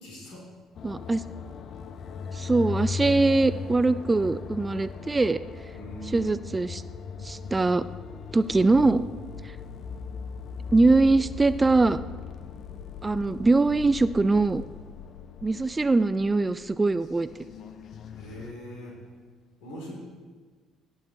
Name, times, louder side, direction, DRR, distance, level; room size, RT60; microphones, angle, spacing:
voice 1, 0.0-0.5 5.7-6.3 18.1-19.0 19.6-19.9, equal, 70° left, -2 dB, 2.5 m, -41 dB
sound 1, 0.7-18.5, left 6 dB, 50° left, 0.6 m, -38 dB
voice 2, 0.8-1.2 2.3-5.4 6.0-6.8 7.2-7.8 8.3-9.0 10.7-12.0 13.0-14.6 15.4-17.3, right 3 dB, 20° right, 14 dB, 0.3 m, -22 dB
18.0 x 6.4 x 2.8 m, 1.5 s
figure-of-eight pair, 50°, 0 cm